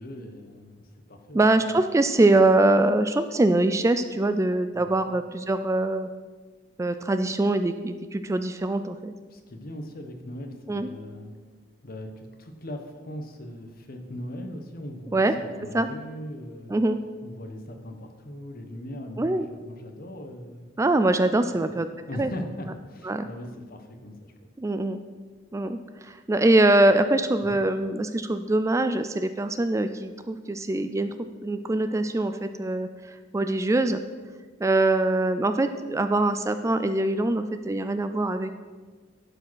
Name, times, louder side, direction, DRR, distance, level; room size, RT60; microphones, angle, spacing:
voice 1, 0.0-1.4 4.7-4.9 9.3-11.3 11.8-16.8 17.2-20.7 21.5-21.8 22.1-24.3 27.4-27.6, left 1 dB, 50° left, 5 dB, 1.1 m, -39 dB
voice 2, 1.3-6.1 6.8-9.1 10.7-10.9 15.1-15.4 15.7-15.9 16.7-17.0 19.2-19.5 20.8-21.9 22.1-22.3 23.0-23.3 24.6-25.0 25.5-34.0 34.6-38.5, right 2 dB, 15° right, 9 dB, 0.3 m, -23 dB
11.5 x 4.9 x 6.2 m, 1.4 s
head